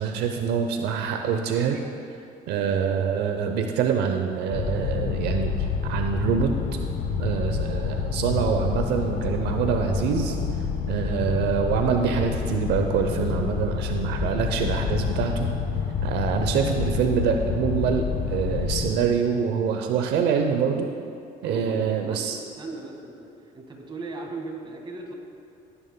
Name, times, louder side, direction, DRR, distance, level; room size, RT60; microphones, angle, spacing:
voice 1, 0.0-1.8 2.5-6.5 7.2-10.4 10.9-15.5 16.0-20.9 21.4-22.4, right 7 dB, 85° right, 4 dB, 0.7 m, -25 dB
sound 1, 4.5-19.0, left 6 dB, 60° left, 1.3 m, -28 dB
voice 2, 21.4-22.2 22.6-23.3 23.5-25.1, right 3 dB, 30° right, 1 dB, 1.7 m, -37 dB
16.5 x 9.8 x 2.2 m, 2.5 s
cardioid pair, 110°, 17 cm